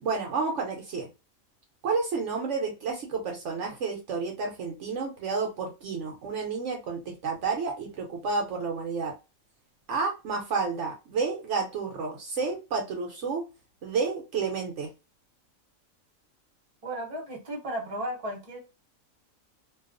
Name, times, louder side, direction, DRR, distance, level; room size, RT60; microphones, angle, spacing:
voice 1, 0.0-1.1 1.8-9.1 9.9-13.4 13.8-14.9, right 4 dB, 65° right, 1 dB, 0.9 m, -30 dB
voice 2, 16.8-18.6, right 1 dB, 30° right, 0 dB, 0.8 m, -34 dB
2.5 x 2.3 x 2.4 m, 0.28 s
omnidirectional pair, 1.4 m